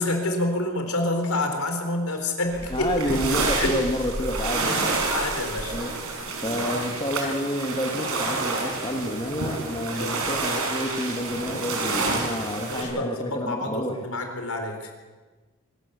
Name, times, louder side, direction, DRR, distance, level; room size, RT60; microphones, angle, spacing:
voice 1, 0.0-2.9 3.5-3.8 5.1-5.8 10.0-10.2 12.7-14.9, left 2 dB, 85° left, 4 dB, 4.1 m, -28 dB
sound 1, 2.5-12.8, right 3 dB, 80° right, 5.2 m, -29 dB
voice 2, 2.7-5.0 5.7-5.9 6.4-14.1, left 1 dB, 20° left, 3 dB, 1.6 m, -29 dB
25.0 x 13.0 x 8.3 m, 1.3 s
head